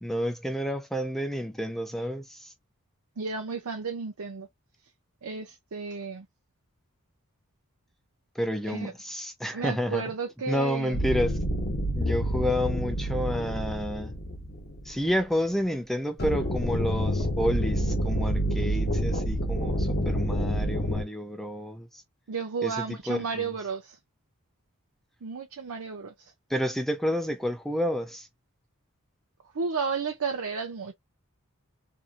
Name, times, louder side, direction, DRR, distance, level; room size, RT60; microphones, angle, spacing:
voice 1, 0.0-2.5 8.4-10.0 10.5-11.4 11.9-14.1 14.9-22.0 22.6-23.5 26.5-28.3, equal, ahead, 0.4 m, -30 dB
voice 2, 3.2-4.5 5.2-6.3 8.6-8.9 9.5-11.0 22.3-24.0 25.2-26.1 29.5-30.9, right 5 dB, 80° right, 0.7 m, -33 dB
sound 1, 10.9-15.2 16.2-21.0, equal, 45° left, 1.0 m, -28 dB
2.7 x 2.6 x 2.5 m
head